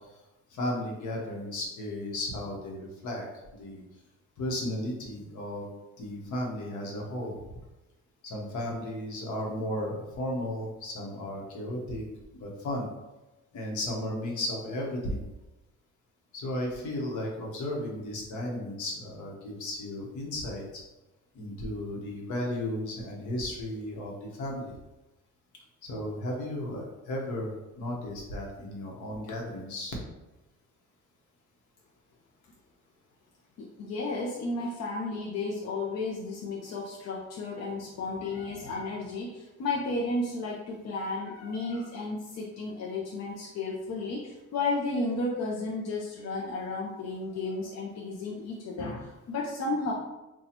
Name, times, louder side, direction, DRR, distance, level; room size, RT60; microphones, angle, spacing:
voice 1, 0.5-3.3 3.5-3.8 4.4-5.7 6.0-7.6 8.2-12.0 12.3-12.9 13.5-15.2 16.3-20.8 21.3-24.7 25.8-29.9, left 1 dB, 75° left, -1 dB, 1.0 m, -34 dB
voice 2, 33.6-49.9, left 2 dB, 60° left, -3 dB, 0.6 m, -33 dB
2.9 x 2.3 x 4.1 m, 1.0 s
cardioid pair, 90°, 30 cm